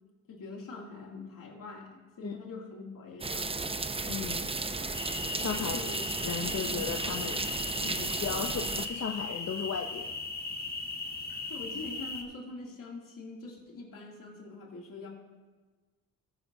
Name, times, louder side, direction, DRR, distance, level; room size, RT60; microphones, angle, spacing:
voice 1, 0.3-3.6 5.6-6.0 6.6-6.9 11.5-15.1, left 3 dB, 70° left, -2 dB, 2.6 m, -44 dB
sound 1, 3.2-8.9, right 3 dB, 15° right, 0.6 m, -34 dB
voice 2, 4.0-4.5 5.3-5.8 6.2-7.5 7.8-10.2, left 7 dB, 45° left, 4 dB, 0.7 m, -36 dB
sound 2, 4.9-12.2, left 3 dB, 25° left, 1.4 m, -38 dB
14.5 x 8.8 x 2.7 m, 1.3 s
cardioid pair, 55°, 34 cm